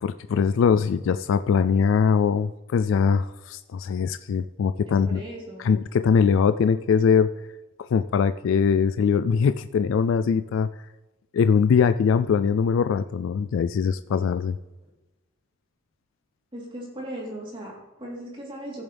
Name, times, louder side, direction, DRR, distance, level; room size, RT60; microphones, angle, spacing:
voice 1, 0.0-5.2 5.6-7.3 7.8-10.7 11.3-14.6, left 6 dB, 75° left, 11 dB, 0.3 m, -22 dB
voice 2, 4.9-5.7 16.5-18.8, right 1 dB, 25° right, -4 dB, 3.5 m, -38 dB
16.0 x 7.1 x 3.4 m, 1.1 s
head